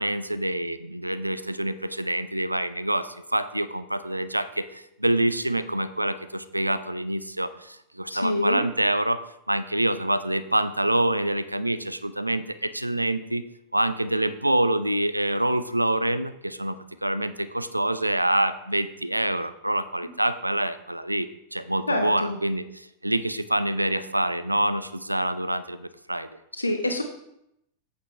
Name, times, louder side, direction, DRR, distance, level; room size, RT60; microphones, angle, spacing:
voice 1, 0.0-9.2 9.5-13.4 13.7-26.3, right 1 dB, 85° right, 13 dB, 0.4 m, -26 dB
voice 2, 8.1-8.6 21.9-22.4 26.6-27.0, left 1 dB, 80° left, 6 dB, 0.7 m, -26 dB
8.4 x 7.4 x 3.1 m, 0.81 s
figure-of-eight pair, 90°, 0 cm